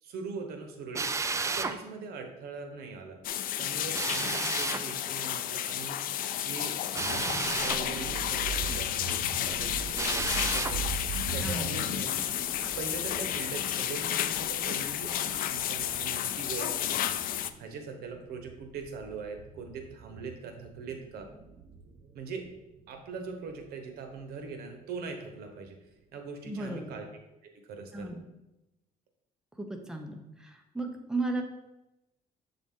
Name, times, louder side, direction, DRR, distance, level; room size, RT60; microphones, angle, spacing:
voice 1, 0.0-3.2 3.6-6.0 6.4-10.9 11.3-12.1 12.7-21.3 22.1-22.5 22.9-25.8 26.1-27.0 27.6-28.1, right 4 dB, 90° right, 4 dB, 1.0 m, -41 dB
Drill, 0.9-1.8 3.9-4.8 6.9-7.8 9.9-10.8, right 4 dB, 20° right, 0.4 m, -32 dB
sound 1, 3.2-17.5, left 11 dB, 65° left, 0.4 m, -32 dB
sound 2, 7.0-24.8 25.2-25.4, right 5 dB, 55° right, 0.6 m, -42 dB
voice 2, 26.5-26.9 27.9-28.2 29.6-31.4, right 2 dB, 5° right, 3 dB, 0.7 m, -35 dB
7.3 x 3.9 x 3.7 m, 0.95 s
cardioid pair, 120°, 16 cm